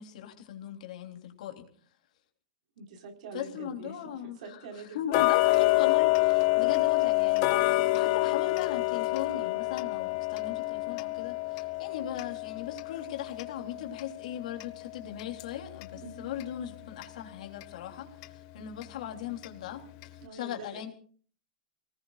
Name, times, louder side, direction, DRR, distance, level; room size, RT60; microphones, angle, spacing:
voice 1, 0.0-1.7 3.3-4.6 4.9-19.9 20.3-20.9, left 10 dB, 70° left, 4 dB, 3.2 m, -39 dB
voice 2, 2.8-5.0 15.9-16.2 20.2-20.9, right 3 dB, 70° right, 3 dB, 4.5 m, -45 dB
Tick-tock, 5.1-16.0 16.4-16.5 17.0-17.1 17.6-17.7 18.2-18.3 18.8-18.9 19.4-19.5 20.0-20.1, left 21 dB, 45° left, 1.1 m, -27 dB
29.0 x 19.0 x 2.4 m, 0.43 s
supercardioid pair, 145°, 4 cm